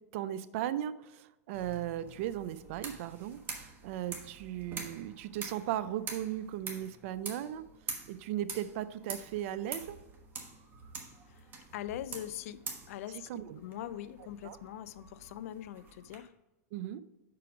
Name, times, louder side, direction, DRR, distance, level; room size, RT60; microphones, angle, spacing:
voice 1, 0.1-7.6 8.1-10.0 13.3-13.6 14.4-14.6 16.7-17.0, right 12 dB, 55° right, 0.5 m, -37 dB
sound 1, 1.5-16.2, right 4 dB, 25° right, 1.2 m, -46 dB
voice 2, 11.7-16.3, left 12 dB, 65° left, 0.4 m, -42 dB
6.0 x 4.8 x 5.9 m
hypercardioid pair, 130°, 8 cm